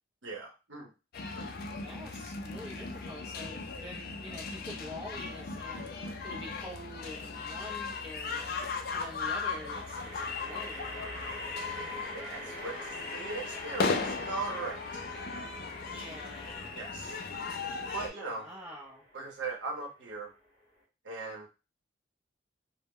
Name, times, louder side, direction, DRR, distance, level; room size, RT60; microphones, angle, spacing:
voice 1, 0.2-0.9 1.4-1.5 11.7-15.0 16.7-17.2 17.9-18.5 19.1-20.3 21.0-21.5, right 3 dB, 70° right, 0 dB, 0.8 m, -39 dB
sound 1, 1.1-18.1, left 4 dB, 50° left, 0.3 m, -37 dB
voice 2, 1.8-8.6 8.9-11.3 15.8-16.8 17.9-19.0, left 1 dB, 25° right, -4 dB, 0.5 m, -46 dB
sound 2, 6.4-6.9 9.5-20.8, equal, 15° left, 0.9 m, -47 dB
2.0 x 2.0 x 3.6 m, 0.29 s
head